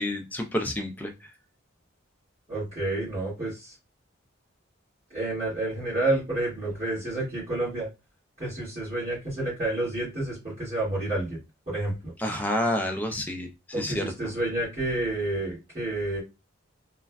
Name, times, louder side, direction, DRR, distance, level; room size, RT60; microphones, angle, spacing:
voice 1, 0.0-1.3 12.2-13.5 13.8-14.3, left 1 dB, 10° left, 4 dB, 0.4 m, -29 dB
voice 2, 2.5-3.7 5.1-7.9 8.4-11.4 11.7-12.1 13.7-16.2, right 2 dB, 35° right, -11 dB, 1.7 m, -29 dB
3.1 x 2.4 x 2.2 m, 0.25 s
head